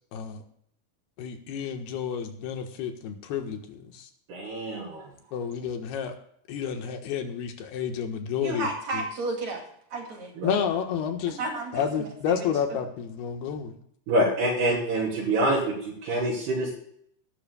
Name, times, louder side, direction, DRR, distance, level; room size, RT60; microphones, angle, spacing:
voice 1, 0.1-0.4 1.2-4.1 5.3-6.1 6.5-9.0 10.4-11.4 11.7-13.8, left 7 dB, 75° left, 5 dB, 3.1 m, -30 dB
voice 2, 4.3-5.0 10.4-10.5 14.1-16.7, right 1 dB, 70° right, -8 dB, 5.3 m, -26 dB
voice 3, 8.4-9.6 9.9-10.3 11.4-12.1 12.4-12.5, right 2 dB, 45° right, 1 dB, 3.2 m, -32 dB
19.5 x 12.5 x 2.3 m, 0.67 s
omnidirectional pair, 4.8 m